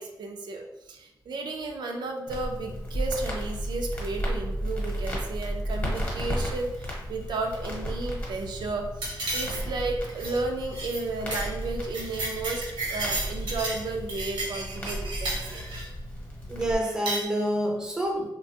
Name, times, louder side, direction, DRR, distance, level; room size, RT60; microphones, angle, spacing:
voice 1, 0.0-15.6, right 3 dB, 70° right, 2 dB, 0.4 m, -33 dB
Crackle, 2.3-16.7, equal, 20° left, 0.8 m, -34 dB
sound 1, 9.0-9.8 10.1-10.4 10.7-11.0 11.3-11.5 11.8-13.8 14.1-15.9 16.8-17.2, right 2 dB, 85° right, 0.9 m, -33 dB
voice 2, 16.5-18.3, equal, 10° right, 0 dB, 0.5 m, -28 dB
3.2 x 2.2 x 2.7 m, 0.91 s
wide cardioid pair, 145°, 8 cm